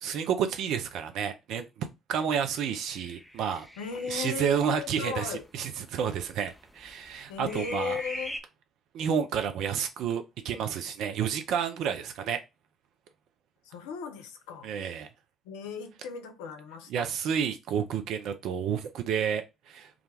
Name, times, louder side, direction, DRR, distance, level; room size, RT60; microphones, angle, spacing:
voice 1, 0.0-3.7 4.1-8.0 8.9-12.4 14.6-15.1 16.9-19.9, right 7 dB, 65° right, 0.4 m, -30 dB
sound 1, 2.9-8.4, equal, 5° left, 0.4 m, -43 dB
voice 2, 3.8-5.4 7.3-8.4 13.7-14.7 15.5-17.1, left 5 dB, 75° left, 0.4 m, -37 dB
2.4 x 2.1 x 3.2 m
figure-of-eight pair, 45°, 0 cm